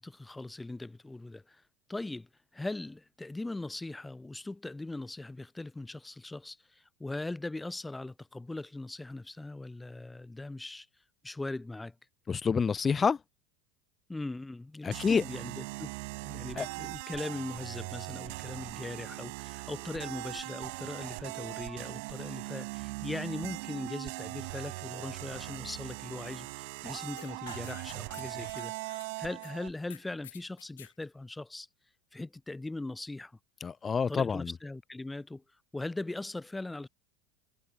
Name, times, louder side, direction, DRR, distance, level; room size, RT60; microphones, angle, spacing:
voice 1, 0.0-1.6 1.9-2.3 2.5-10.9 11.2-11.9 14.1-15.9 16.2-31.7 32.1-33.3 34.1-35.4 35.7-36.9, left 2 dB, 10° left, 4.7 m, -40 dB
voice 2, 12.3-13.2 14.8-15.2 16.6-16.7 33.6-34.5, left 6 dB, 25° left, 1.9 m, -28 dB
sound 1, 14.9-29.7, right 29 dB, 65° right, 7.3 m, -40 dB
sound 2, 27.2-29.5 29.9-30.9, left 11 dB, 80° left, 3.4 m, -52 dB
hypercardioid pair, 80°, 0 cm